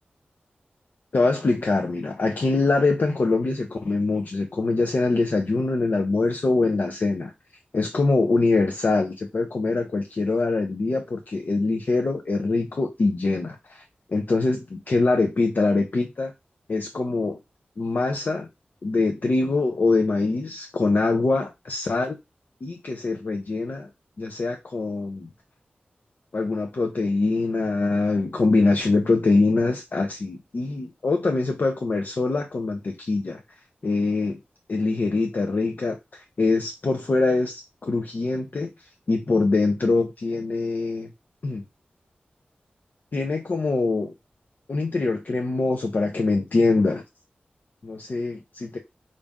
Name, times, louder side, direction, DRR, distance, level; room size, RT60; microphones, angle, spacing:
voice 1, 1.1-7.3 7.7-13.8 14.1-16.3 16.7-17.4 17.8-18.5 18.8-22.2 22.6-23.9 24.2-25.3 26.3-33.4 33.8-34.4 34.7-41.1 41.4-41.6 43.1-44.1 44.7-47.0 47.8-48.4 48.7-48.8, left 3 dB, 60° left, 0.6 m, -23 dB
5.2 x 2.5 x 3.5 m
wide cardioid pair, 95°, 3 cm